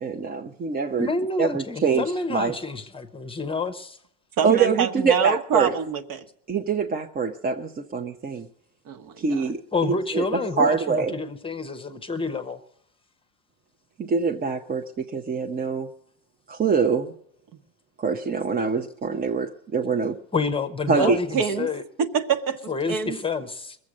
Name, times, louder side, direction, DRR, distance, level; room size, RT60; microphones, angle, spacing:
voice 1, 0.0-1.1 1.4-2.5 4.4-5.7 6.5-8.5 9.2-11.1 14.0-15.9 16.5-17.1 18.0-20.2 20.9-21.2, right 5 dB, 25° right, 4 dB, 0.7 m, -24 dB
voice 2, 1.0-4.0 9.7-12.6 20.3-21.8 22.7-23.8, left 4 dB, 15° left, 8 dB, 0.8 m, -28 dB
voice 3, 4.4-6.2 8.9-9.5 20.9-21.7 22.0-23.2, right 7 dB, 55° right, 8 dB, 1.3 m, -26 dB
21.0 x 7.7 x 6.3 m, 0.70 s
cardioid pair, 140°, 39 cm